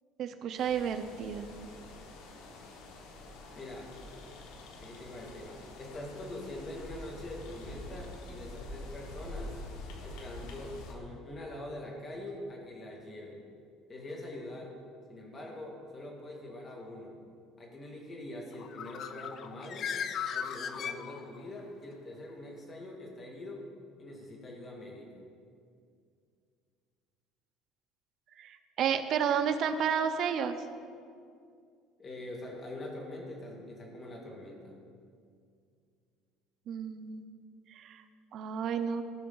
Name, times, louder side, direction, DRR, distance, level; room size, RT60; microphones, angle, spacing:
voice 1, 0.2-1.5 28.4-30.6 36.7-37.3 37.7-38.0 38.3-39.0, right 7 dB, 50° right, 8 dB, 0.7 m, -31 dB
sound 1, 0.6-10.9, left 2 dB, 90° left, 1.4 m, -46 dB
voice 2, 3.6-3.9 4.8-9.6 10.0-13.4 13.9-14.7 15.1-17.1 17.6-19.9 20.3-23.7 24.0-25.1 32.0-34.7, left 1 dB, 25° left, -1 dB, 2.3 m, -44 dB
Bird, 18.5-21.6, left 7 dB, 45° left, 0.5 m, -37 dB
16.5 x 5.6 x 4.0 m, 2.3 s
cardioid pair, 135°, 0 cm